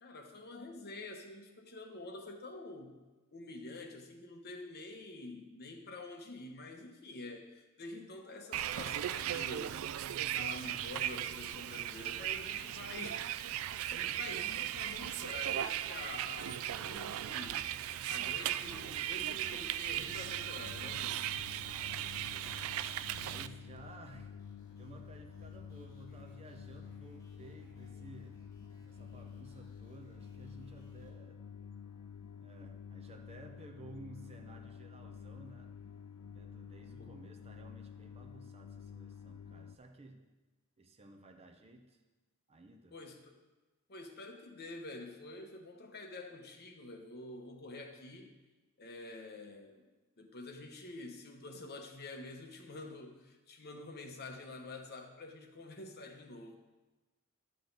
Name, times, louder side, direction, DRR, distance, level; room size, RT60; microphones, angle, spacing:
voice 1, 0.0-3.0 3.3-9.8 10.3-17.6 18.1-21.2 36.9-37.1 42.9-43.4 43.9-48.3 48.8-49.9 50.2-56.6, left 2 dB, 50° left, 3 dB, 1.1 m, -47 dB
Bus, 8.5-23.5, right 12 dB, 65° right, 0.3 m, -37 dB
sound 1, 19.1-31.1, left 1 dB, 15° left, 2.9 m, -64 dB
sound 2, 20.1-39.8, left 7 dB, 75° left, 0.4 m, -50 dB
voice 2, 21.6-22.7 23.2-24.4 24.7-28.4 28.8-31.4 32.4-35.8 36.3-40.3 40.8-42.0 42.5-42.9, right 2 dB, 30° right, 3 dB, 0.7 m, -55 dB
11.0 x 6.6 x 4.0 m, 1.2 s
head